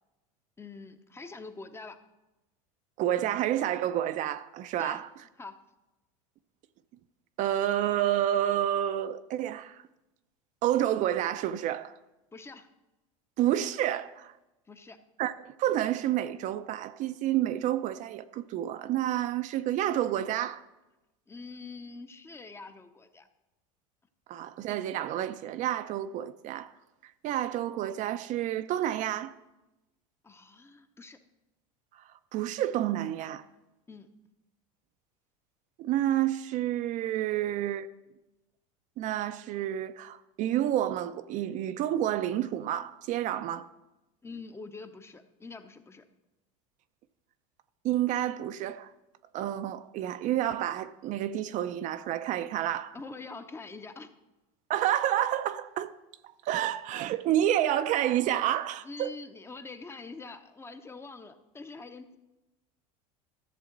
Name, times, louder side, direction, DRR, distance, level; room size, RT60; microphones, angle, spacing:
voice 1, 0.6-2.0 4.8-5.0 5.4-5.6 12.3-12.7 14.7-15.0 21.3-23.3 30.2-31.2 33.9-34.1 44.2-46.1 52.9-54.1 58.8-62.2, left 3 dB, 15° left, 0.7 m, -45 dB
voice 2, 3.0-5.1 7.4-9.8 10.6-12.0 13.4-14.3 15.2-20.6 24.3-26.7 27.2-29.3 32.3-33.4 35.8-37.9 39.0-43.7 47.8-48.9 49.3-53.0 54.7-55.9 56.4-59.1, right 12 dB, 45° right, 0.5 m, -29 dB
13.5 x 7.1 x 3.9 m
supercardioid pair, 110°, 17 cm